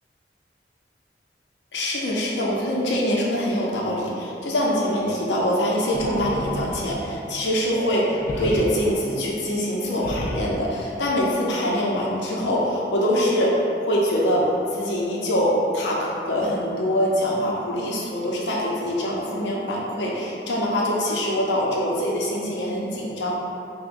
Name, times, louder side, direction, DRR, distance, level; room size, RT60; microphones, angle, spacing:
voice 1, 1.7-23.4, equal, 90° left, -4 dB, 0.7 m, -24 dB
sound 1, 5.9-7.4 8.1-8.6 9.8-10.5, left 1 dB, 45° left, 0.4 m, -32 dB
5.9 x 2.2 x 2.5 m, 2.7 s
head